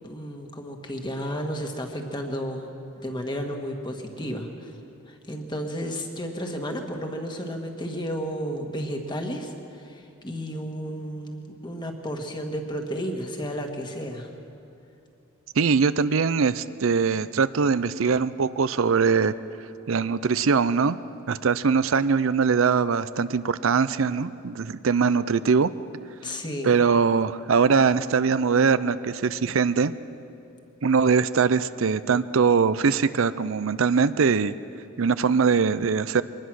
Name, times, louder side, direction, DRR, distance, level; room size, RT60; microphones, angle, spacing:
voice 1, 0.0-2.7 3.0-4.7 5.1-9.5 9.8-14.3 26.2-26.8, equal, 20° left, 3 dB, 1.7 m, -32 dB
voice 2, 15.6-19.3 19.9-21.0 21.3-25.7 26.6-29.9 30.8-34.5 35.0-36.2, right 5 dB, 70° right, 14 dB, 0.5 m, -22 dB
23.0 x 19.5 x 6.3 m, 2.7 s
head